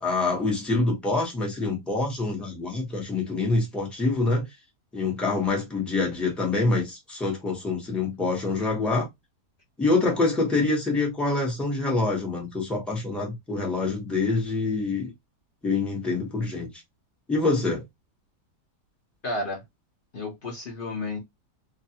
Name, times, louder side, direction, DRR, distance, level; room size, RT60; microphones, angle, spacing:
voice 1, 0.0-4.5 4.9-9.1 9.8-15.1 15.6-16.7 17.3-17.8, left 3 dB, ahead, 0.7 m, -26 dB
voice 2, 19.2-19.6 20.1-21.2, left 2 dB, 50° left, 0.6 m, -31 dB
2.5 x 2.4 x 2.7 m
omnidirectional pair, 1.8 m